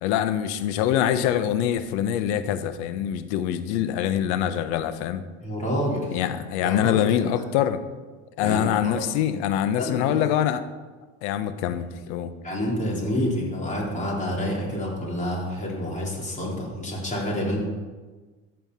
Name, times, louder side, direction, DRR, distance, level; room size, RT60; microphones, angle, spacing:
voice 1, 0.0-5.2 6.1-7.8 8.4-10.6 11.2-12.3, left 10 dB, 80° left, 11 dB, 1.0 m, -24 dB
voice 2, 5.4-6.2 6.6-7.2 8.4-9.0 9.8-10.2 12.4-17.6, equal, 20° left, -3 dB, 4.0 m, -28 dB
14.5 x 5.6 x 5.6 m, 1.3 s
supercardioid pair, 105°, 34 cm